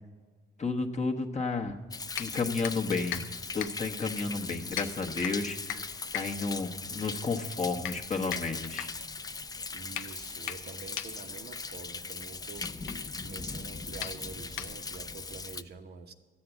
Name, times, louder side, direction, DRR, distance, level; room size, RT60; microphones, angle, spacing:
voice 1, 0.6-1.8 2.2-3.2 3.5-5.8 6.1-8.9, left 4 dB, 35° left, 4 dB, 1.2 m, -32 dB
Thunder, 1.9-15.6, left 4 dB, 20° left, 0.5 m, -40 dB
sound 1, 2.1-15.1, left 11 dB, 85° left, 0.7 m, -42 dB
voice 2, 9.7-12.7 13.2-16.1, right 5 dB, 55° right, 5 dB, 1.1 m, -47 dB
13.0 x 8.5 x 7.9 m, 1.5 s
cardioid pair, 90°, 20 cm